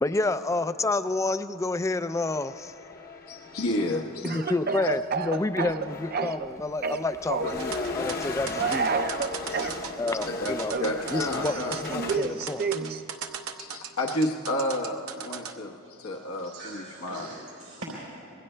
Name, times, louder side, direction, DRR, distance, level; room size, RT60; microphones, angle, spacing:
voice 1, 0.0-2.7 4.2-8.9 10.0-10.7 11.1-12.7, left 2 dB, 15° left, 12 dB, 0.3 m, -29 dB
sound 1, 2.1-4.3 5.3-5.4 5.7-12.2, left 3 dB, 45° left, 0.8 m, -37 dB
voice 2, 3.3-4.4 9.5-9.7 10.3-11.8 12.1-12.2 13.6-17.3, left 1 dB, 80° left, 0 dB, 1.1 m, -31 dB
Speech / Cough, 4.2-6.5 6.8-7.6 8.5-9.8 10.7-13.0, right 5 dB, 45° right, 0.5 m, -30 dB
sound 2, 7.6-15.5, right 7 dB, 75° right, 0.8 m, -38 dB
voice 3, 16.1-18.0, right 2 dB, 90° right, -6 dB, 3.4 m, -42 dB
26.0 x 21.5 x 2.2 m, 2.9 s
head